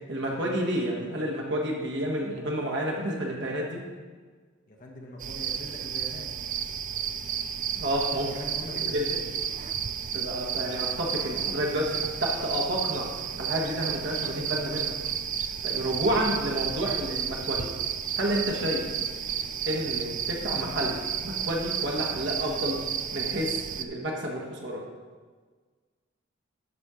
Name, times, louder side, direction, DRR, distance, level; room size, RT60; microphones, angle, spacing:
voice 1, 0.1-3.8 7.8-8.3 8.8-9.1 10.1-13.1 13.4-14.9 15.6-17.7 18.1-18.9 19.6-21.0 21.2-22.8 23.1-24.8, right 1 dB, 55° right, -1 dB, 1.5 m, -30 dB
voice 2, 4.7-6.3 8.3-9.3, equal, 40° left, 0 dB, 1.2 m, -42 dB
sound 1, 5.2-23.9, right 8 dB, 35° right, 0.4 m, -32 dB
12.5 x 4.3 x 5.0 m, 1.5 s
head